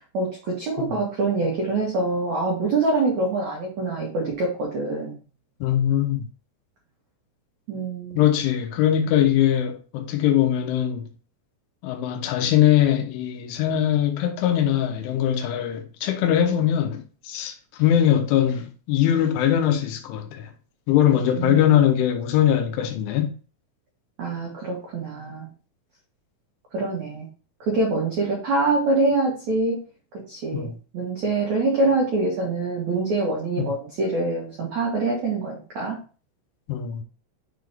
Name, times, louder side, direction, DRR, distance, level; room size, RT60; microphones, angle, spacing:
voice 1, 0.1-5.1 7.7-8.2 21.4-21.6 24.2-25.5 26.7-27.3 27.7-29.8 30.1-36.0, right 2 dB, 80° right, 1.6 m, -25 dB
voice 2, 5.6-6.3 8.1-11.1 11.8-17.5 17.8-20.5 20.9-23.3 30.5-30.8 33.6-33.7 36.7-37.0, left 10 dB, 75° left, 3.2 m, -21 dB
7.5 x 4.3 x 3.5 m
omnidirectional pair, 6.0 m